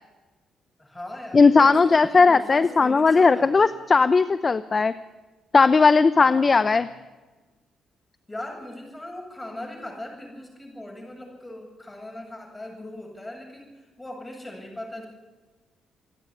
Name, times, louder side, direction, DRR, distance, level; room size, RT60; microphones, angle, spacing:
voice 1, 0.8-3.6 6.1-6.8 8.3-15.1, left 1 dB, 15° left, 2 dB, 7.9 m, -39 dB
voice 2, 1.3-4.9 5.5-6.9, left 4 dB, 30° left, 14 dB, 0.7 m, -17 dB
28.0 x 9.9 x 9.9 m, 1.2 s
cardioid pair, 90°, 0 cm